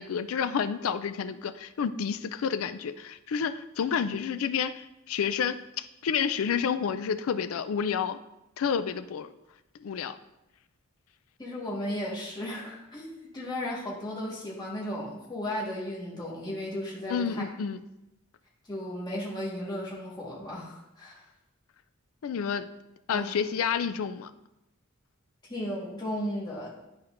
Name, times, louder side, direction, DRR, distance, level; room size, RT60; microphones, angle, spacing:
voice 1, 0.0-8.2 8.6-9.3 9.8-10.2 17.1-17.8 22.2-22.7 23.1-24.3, left 7 dB, 80° left, 12 dB, 0.4 m, -30 dB
voice 2, 11.4-17.4 18.7-21.2 23.1-23.4 25.5-26.7, left 1 dB, 20° left, -6 dB, 1.5 m, -35 dB
10.5 x 4.3 x 2.5 m, 0.91 s
head